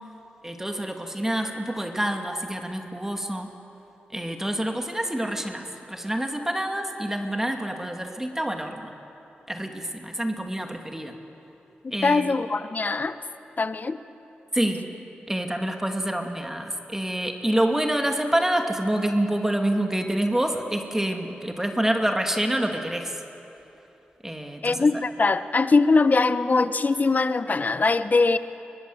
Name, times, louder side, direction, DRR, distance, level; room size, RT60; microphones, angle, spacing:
voice 1, 0.4-3.5 4.1-8.9 9.5-11.1 11.9-12.3 14.5-14.8 15.3-23.1 24.2-25.0, right 1 dB, 10° right, 4 dB, 2.4 m, -27 dB
voice 2, 11.8-13.2 13.6-14.0 24.6-28.4, left 3 dB, 45° left, 12 dB, 0.9 m, -22 dB
23.5 x 20.5 x 7.9 m, 2.9 s
cardioid pair, 50°, 4 cm